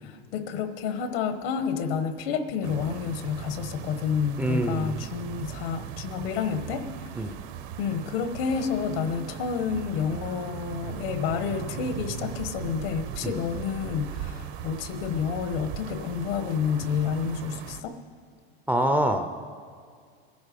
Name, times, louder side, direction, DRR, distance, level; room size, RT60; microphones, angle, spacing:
voice 1, 0.3-6.8 7.8-18.0, left 6 dB, 85° left, 9 dB, 1.2 m, -29 dB
sound 1, 2.6-17.8, right 10 dB, 70° right, 0.9 m, -38 dB
voice 2, 4.4-5.0 7.2-7.4 13.2-13.4 18.7-19.3, right 1 dB, 5° right, 5 dB, 0.3 m, -25 dB
21.0 x 11.0 x 5.1 m, 2.1 s
cardioid pair, 160°, 29 cm